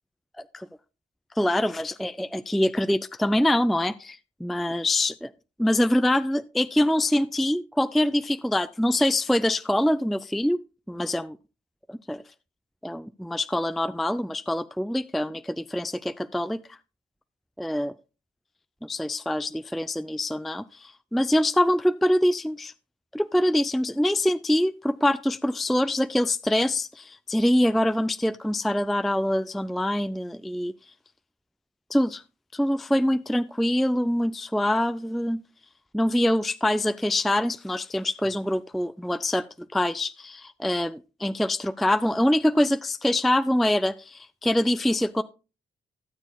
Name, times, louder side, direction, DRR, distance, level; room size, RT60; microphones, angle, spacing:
voice 1, 1.4-5.3 5.6-10.6 10.9-11.4 11.9-12.2 12.8-16.8 17.6-17.9 18.8-22.7 23.1-30.7 31.9-32.2 32.5-35.4 35.9-45.2, left 1 dB, ahead, 13 dB, 0.4 m, -24 dB
16.5 x 7.1 x 2.2 m, 0.32 s
supercardioid pair, 55°, 21 cm